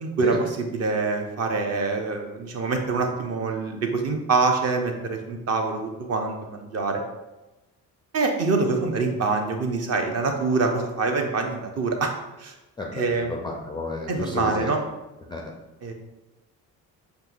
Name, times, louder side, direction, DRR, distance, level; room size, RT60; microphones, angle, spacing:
voice 1, 0.0-7.0 8.1-12.1 12.4-12.5 12.9-13.3 14.1-14.8 15.8-15.9, right 3 dB, 35° right, 4 dB, 0.7 m, -25 dB
voice 2, 12.8-14.7 15.3-15.5, left 2 dB, 10° left, -1 dB, 0.3 m, -32 dB
6.5 x 2.6 x 2.4 m, 1.0 s
figure-of-eight pair, 50°, 47 cm